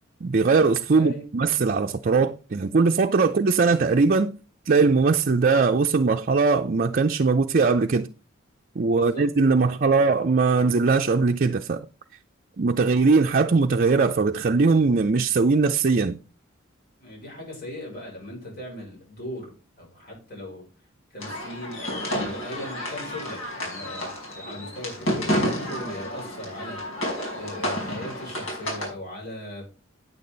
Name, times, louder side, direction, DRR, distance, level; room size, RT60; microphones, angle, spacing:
voice 1, 0.2-4.3 4.7-8.1 8.8-11.9 12.6-16.2, right 4 dB, 45° right, 0.5 m, -20 dB
voice 2, 0.9-1.3 8.8-9.3 17.0-20.6 21.1-27.1 27.3-29.6, left 1 dB, 50° left, 6.0 m, -38 dB
sound 1, 21.2-28.9, equal, 75° left, 5.4 m, -30 dB
9.2 x 8.6 x 3.9 m
head